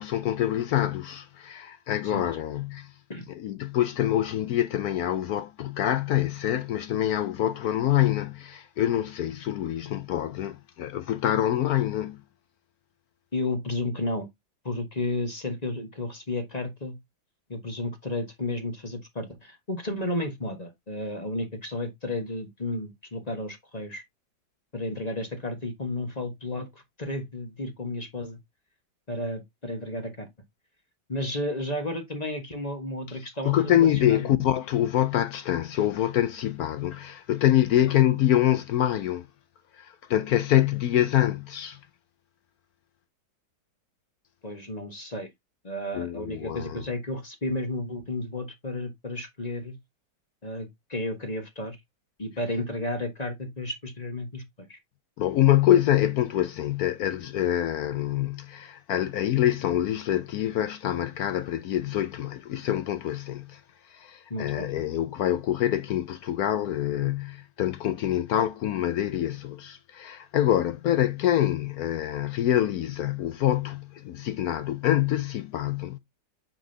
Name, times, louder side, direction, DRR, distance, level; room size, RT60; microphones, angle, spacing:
voice 1, 0.0-3.0 3.3-12.2 33.4-39.3 39.7-41.8 45.9-46.8 55.2-76.0, left 12 dB, 70° left, 0.9 m, -25 dB
voice 2, 13.3-14.3 14.6-17.0 17.5-24.0 24.7-28.4 29.1-30.3 31.1-34.3 44.4-45.3 45.6-49.8 50.4-51.8 52.2-54.8 64.3-64.7, left 2 dB, 25° left, 1.3 m, -32 dB
8.9 x 5.4 x 2.7 m
omnidirectional pair, 1.9 m